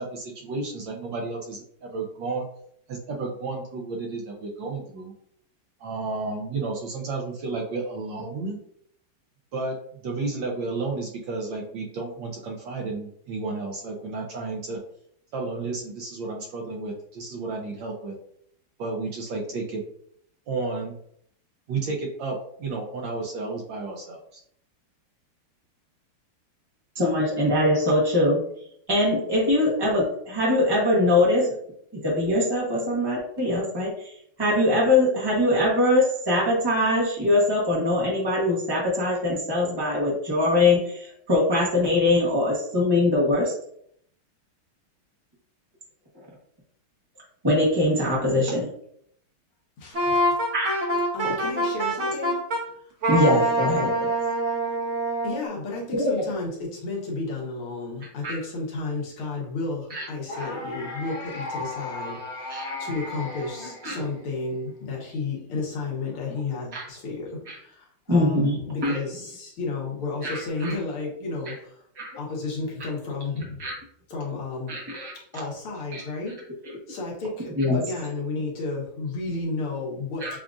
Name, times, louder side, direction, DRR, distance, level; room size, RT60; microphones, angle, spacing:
voice 1, 0.0-2.4 2.9-5.1 5.8-8.6 9.5-14.8 15.3-18.2 18.8-19.8 20.5-21.0 21.7-24.4, right 3 dB, 70° right, -1 dB, 1.3 m, -32 dB
voice 2, 27.0-28.4 28.9-31.5 32.0-43.5 47.4-48.7 50.5-50.7 53.1-54.1 56.0-56.2 58.2-58.3 59.9-60.0 60.3-60.5 62.5-62.8 63.8-64.0 66.7-66.8 67.5-67.6 68.1-69.0 70.2-70.7 71.5-71.6 72.0-72.1 73.6-73.7 74.7-75.1 75.9-76.0 76.6-76.8 77.6-77.8 80.2-80.4, left 1 dB, 30° right, -5 dB, 0.4 m, -22 dB
voice 3, 49.8-50.2 51.1-52.4 55.2-71.8 72.2-73.6 74.1-74.7 75.2-76.4 76.9-80.4, left 3 dB, 80° left, -3 dB, 2.1 m, -32 dB
Wind instrument woodwind instrument, 49.9-52.6 53.0-55.4, right 1 dB, 55° right, 0.9 m, -25 dB
sound 1, 60.3-64.4, left 2 dB, 35° left, 1.2 m, -36 dB
7.1 x 2.5 x 2.4 m, 0.68 s
omnidirectional pair, 2.4 m